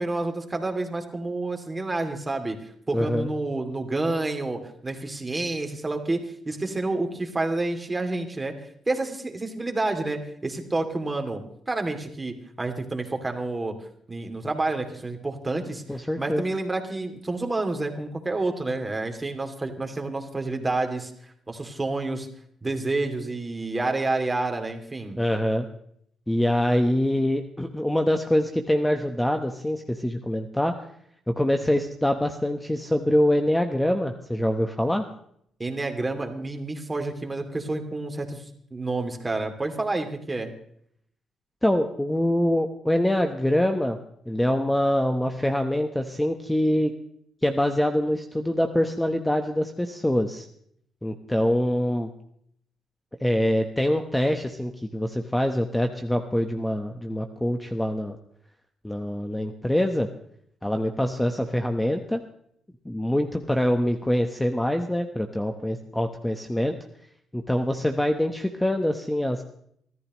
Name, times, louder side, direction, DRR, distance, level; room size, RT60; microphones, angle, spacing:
voice 1, 0.0-2.6 2.9-6.2 6.5-8.5 8.9-11.4 11.7-13.8 14.1-15.8 16.2-21.1 21.5-22.3 22.6-25.2 35.6-40.5, right 2 dB, 20° right, 5 dB, 2.7 m, -29 dB
voice 2, 2.9-3.3 15.9-16.4 25.2-25.7 26.3-30.7 31.3-35.1 41.6-44.0 44.3-46.9 47.4-50.5 51.0-52.1 53.2-58.2 58.8-60.1 60.6-62.2 62.8-66.7 67.3-69.4, left 1 dB, 5° left, 6 dB, 1.1 m, -24 dB
25.5 x 14.0 x 3.2 m, 0.67 s
cardioid pair, 90°, 0 cm